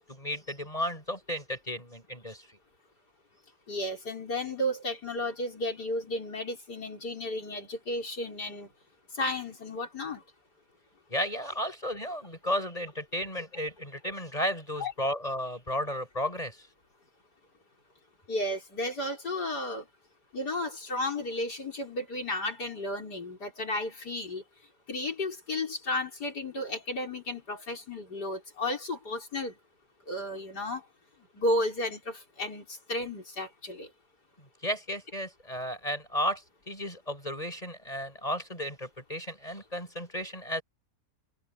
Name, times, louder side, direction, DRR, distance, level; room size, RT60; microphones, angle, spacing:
voice 1, 0.0-2.4 11.1-16.7 34.6-40.6, equal, 20° left, 6.8 m, -33 dB
voice 2, 3.7-8.7 9.1-10.2 14.8-14.9 18.3-19.9 20.3-24.4 24.9-29.6 30.1-30.8 31.3-33.9, left 1 dB, 80° left, 5.9 m, -33 dB
omnidirectional pair, 1.7 m